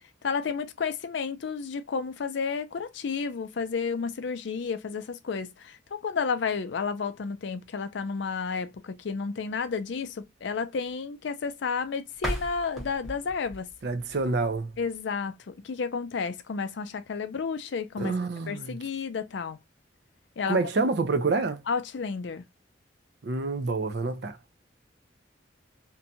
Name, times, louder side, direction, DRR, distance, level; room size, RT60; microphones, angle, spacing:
voice 1, 0.2-13.7 14.8-18.2 18.5-19.6 20.4-20.6 21.7-22.4, left 5 dB, 65° left, 0.4 m, -31 dB
sound 1, 12.1-15.0, equal, ahead, 0.6 m, -37 dB
voice 2, 13.8-14.7 18.0-18.8 20.5-21.6 23.2-24.4, right 3 dB, 55° right, 0.4 m, -27 dB
2.7 x 2.2 x 2.6 m
head